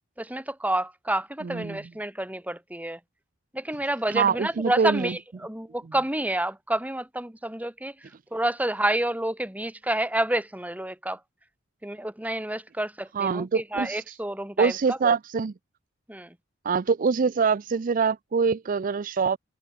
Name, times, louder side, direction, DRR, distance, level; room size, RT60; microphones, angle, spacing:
voice 1, 0.2-3.0 3.5-7.9 8.3-11.2 11.8-15.1 16.1-16.3, right 1 dB, 10° right, 2.3 m, -29 dB
voice 2, 1.4-1.8 4.1-5.1 13.1-14.2 14.6-15.5 16.6-19.4, right 5 dB, 45° right, 0.4 m, -24 dB
head